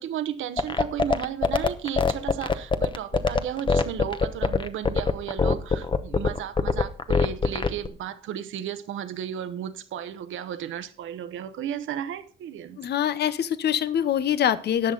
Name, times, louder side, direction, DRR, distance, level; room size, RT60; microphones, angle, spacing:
voice 1, 0.0-12.8, right 9 dB, 75° right, 1.1 m, -34 dB
sound 1, 0.6-7.9, left 4 dB, 25° left, 0.9 m, -22 dB
voice 2, 12.8-14.9, left 9 dB, 55° left, 0.7 m, -24 dB
18.5 x 6.2 x 3.9 m
cardioid pair, 90°, 20 cm